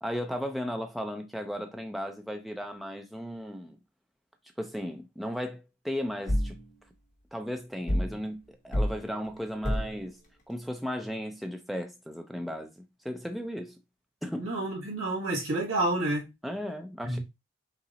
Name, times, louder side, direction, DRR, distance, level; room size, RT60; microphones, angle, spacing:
voice 1, 0.0-3.8 4.6-6.6 7.3-10.2 10.5-13.8 14.2-14.5 16.4-17.2, equal, ahead, 0.4 m, -35 dB
sound 1, 6.3-6.6 7.9-8.2 8.7-9.0 9.6-10.0, equal, 35° left, 0.9 m, -27 dB
voice 2, 14.4-16.3 17.0-17.2, right 2 dB, 90° right, 1.8 m, -29 dB
5.4 x 2.0 x 3.8 m
head